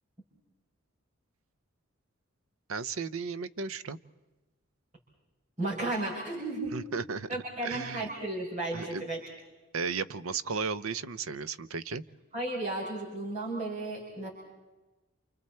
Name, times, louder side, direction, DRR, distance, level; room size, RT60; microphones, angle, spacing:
voice 1, 2.7-4.0 6.7-7.3 7.6-8.1 8.7-9.0 9.7-12.0, right 5 dB, 80° right, 15 dB, 0.7 m, -34 dB
voice 2, 5.6-6.7 7.3-9.2 12.3-14.3, right 2 dB, 35° right, -5 dB, 6.2 m, -34 dB
29.0 x 29.0 x 4.4 m, 1.1 s
head